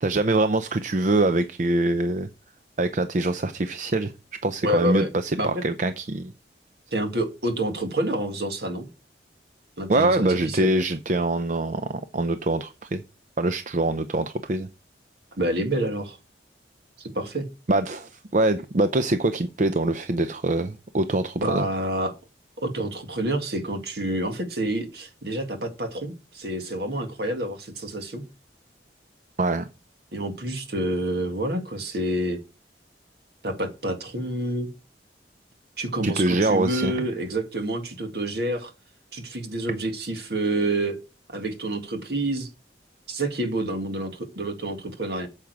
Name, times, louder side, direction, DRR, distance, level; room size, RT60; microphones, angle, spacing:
voice 1, 0.0-2.3 2.8-4.1 4.4-6.3 9.9-13.0 13.4-14.7 17.7-21.7 29.4-29.7 36.0-37.0, right 2 dB, 45° right, 0.6 m, -24 dB
voice 2, 4.6-5.1 5.4-5.6 6.9-8.9 9.8-10.7 15.4-16.2 17.0-17.5 21.4-22.1 22.6-28.2 30.1-32.4 33.4-34.7 35.8-38.7 39.1-41.0 41.3-42.5 43.1-45.3, right 1 dB, 65° right, 1.9 m, -28 dB
8.8 x 7.3 x 4.7 m
head